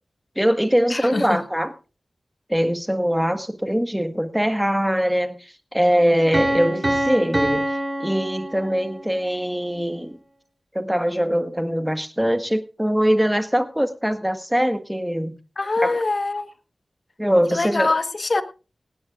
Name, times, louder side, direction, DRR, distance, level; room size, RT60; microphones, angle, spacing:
voice 1, 0.3-1.7 2.5-10.2 10.7-15.3 15.8-16.0 17.2-17.9, equal, 5° right, 1.6 m, -22 dB
voice 2, 0.9-1.4 15.6-16.5 17.5-18.4, left 3 dB, 55° left, 1.3 m, -23 dB
Piano, 6.3-9.1, right 1 dB, 35° right, 3.3 m, -25 dB
17.5 x 17.0 x 2.5 m
cardioid pair, 50°, 0 cm